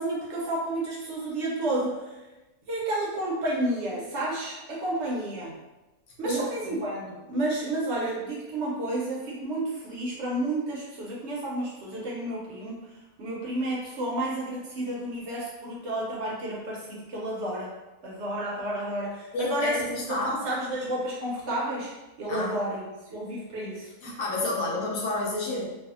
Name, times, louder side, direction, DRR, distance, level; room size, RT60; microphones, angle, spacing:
voice 1, 0.0-2.3 2.7-5.5 6.2-17.7 18.0-19.8 20.1-21.9 22.2-23.9, right 1 dB, 65° right, -4 dB, 0.8 m, -31 dB
voice 2, 6.2-6.8 19.3-20.4 22.3-22.5 24.0-25.7, left 1 dB, 75° left, -2 dB, 1.0 m, -30 dB
2.6 x 2.3 x 2.4 m, 1.1 s
omnidirectional pair, 1.5 m